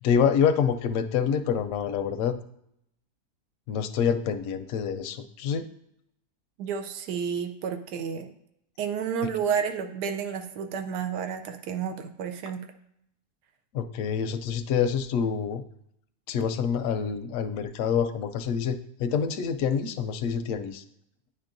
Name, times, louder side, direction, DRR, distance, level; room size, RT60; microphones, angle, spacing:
voice 1, 0.0-2.4 3.7-5.6 13.7-15.6 16.3-20.8, left 7 dB, 70° left, 8 dB, 0.8 m, -26 dB
voice 2, 6.6-8.3 8.8-12.6, right 7 dB, 90° right, 6 dB, 1.2 m, -31 dB
9.5 x 4.4 x 2.5 m, 0.75 s
omnidirectional pair, 1.7 m